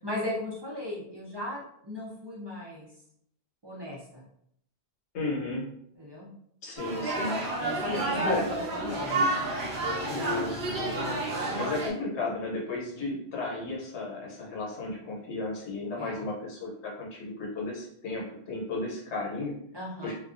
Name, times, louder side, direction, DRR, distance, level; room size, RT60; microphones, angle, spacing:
voice 1, 0.0-2.9 3.6-4.2 6.0-6.3 7.6-9.2 16.0-16.3 19.7-20.1, left 1 dB, 30° right, -8 dB, 0.6 m, -37 dB
voice 2, 5.1-5.7 6.6-7.4 7.9-8.4 10.1-19.5 20.0-20.1, left 2 dB, 90° left, -3 dB, 1.1 m, -34 dB
sound 1, 6.8-11.9, right 2 dB, 60° right, 0.9 m, -30 dB
2.3 x 2.3 x 2.5 m, 0.71 s
omnidirectional pair, 1.1 m